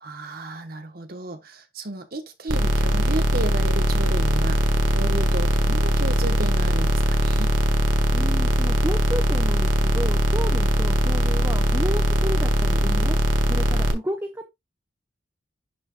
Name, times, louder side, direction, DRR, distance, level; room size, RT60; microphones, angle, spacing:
voice 1, 0.0-7.5, right 2 dB, 45° right, 1.0 m, -33 dB
sound 1, 2.5-13.9, equal, 75° right, 1.3 m, -21 dB
voice 2, 8.1-13.2 13.5-14.5, equal, 15° right, 0.8 m, -32 dB
11.5 x 4.1 x 2.2 m
head